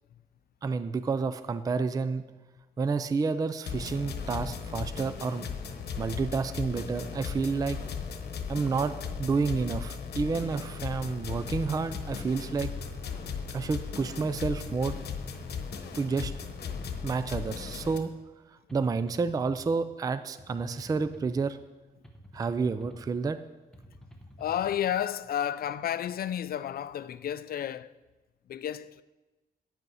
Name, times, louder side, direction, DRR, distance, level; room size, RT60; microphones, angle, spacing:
voice 1, 0.6-2.2 2.8-5.5 6.0-7.8 8.5-8.9 9.2-12.7 13.5-15.0 16.0-16.3 17.0-18.1 18.7-21.6 22.3-23.4, right 4 dB, 20° right, 0.3 m, -30 dB
sound 1, 3.7-18.0, left 6 dB, 80° left, 1.0 m, -37 dB
sound 2, 6.0-6.3 7.0-8.0 8.6-9.7 10.3-11.4 12.0-13.0 13.7-14.7 15.3-16.4 17.0-18.1 18.7-19.7 20.4-21.4 22.0-23.1 23.7-24.8, equal, 5° left, 1.0 m, -50 dB
voice 2, 24.4-27.9 28.5-29.0, left 10 dB, 65° left, 0.4 m, -32 dB
8.9 x 8.3 x 5.4 m
wide cardioid pair, 165°, 16 cm